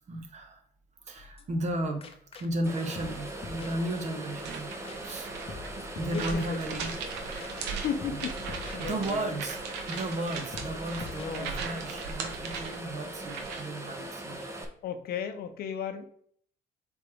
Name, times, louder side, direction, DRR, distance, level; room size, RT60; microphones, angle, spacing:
voice 1, 0.1-0.6 1.0-4.7 5.0-5.3 5.8-6.9 7.2-8.2 8.8-9.6 9.9-14.5, right 1 dB, 45° right, 4 dB, 1.3 m, -35 dB
sound 1, 1.2-1.7 2.0-2.7 3.0-4.3 4.5-4.6 4.8-5.2 5.5-6.8 7.1-7.2 7.4-9.3 9.6-9.7 9.9-10.3 10.5-11.8, left 5 dB, 35° left, 0.8 m, -46 dB
sound 2, 2.7-14.7, right 1 dB, 15° right, 1.0 m, -40 dB
sound 3, 4.3-13.8, right 5 dB, 90° right, 1.0 m, -39 dB
voice 2, 6.1-6.8 7.6-9.3 11.1-11.6 14.8-16.1, left 7 dB, 65° left, 8 dB, 0.8 m, -35 dB
7.6 x 3.6 x 3.5 m, 0.63 s
cardioid pair, 110°, 17 cm